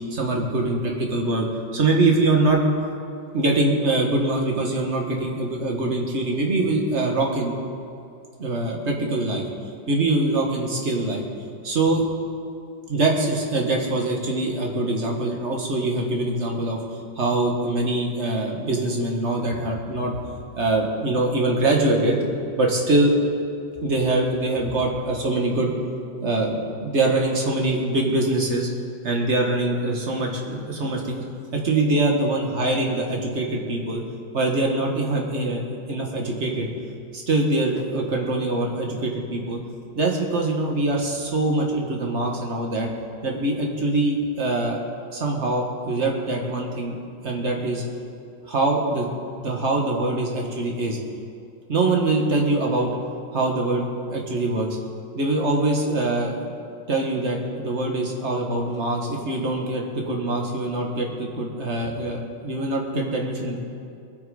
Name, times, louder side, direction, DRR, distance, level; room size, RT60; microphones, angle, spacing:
voice 1, 0.1-1.5 1.7-2.6 3.3-7.5 8.4-9.4 9.9-11.2 11.6-12.0 12.9-16.8 17.2-20.2 20.6-23.1 23.8-25.7 26.2-28.7 29.0-31.2 31.5-34.0 34.3-36.7 37.1-39.6 40.0-42.9 43.2-44.8 45.1-47.0 47.2-47.8 48.5-49.1 49.4-51.0 51.7-52.9 53.3-53.8 54.1-54.7 55.2-56.5 56.9-63.6, right 2 dB, 40° right, 0 dB, 1.9 m, -23 dB
22.5 x 8.1 x 5.1 m, 2.5 s
omnidirectional pair, 2.0 m